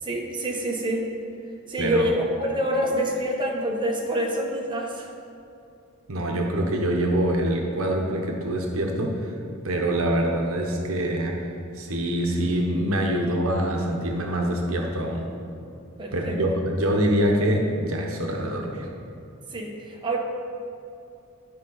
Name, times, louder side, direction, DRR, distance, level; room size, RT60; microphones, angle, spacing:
voice 1, 0.0-1.0 1.7-5.1 16.0-16.4 19.5-20.2, right 1 dB, 20° right, -2 dB, 1.1 m, -26 dB
voice 2, 6.1-9.3 9.6-11.3 11.7-15.3 16.1-18.9, right 1 dB, 75° right, 1 dB, 0.9 m, -25 dB
11.5 x 5.2 x 3.9 m, 2.6 s
head